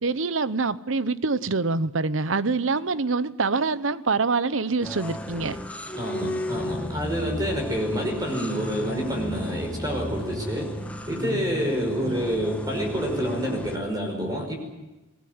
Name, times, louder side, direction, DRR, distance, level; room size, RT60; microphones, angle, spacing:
voice 1, 0.0-5.6 12.0-12.1, right 4 dB, 75° right, 16 dB, 0.9 m, -25 dB
sound 1, 4.8-13.7, left 1 dB, 5° left, 2.2 m, -33 dB
voice 2, 6.0-10.7 11.1-14.5, equal, 20° right, 1 dB, 5.4 m, -28 dB
23.5 x 19.0 x 9.5 m, 1.1 s
head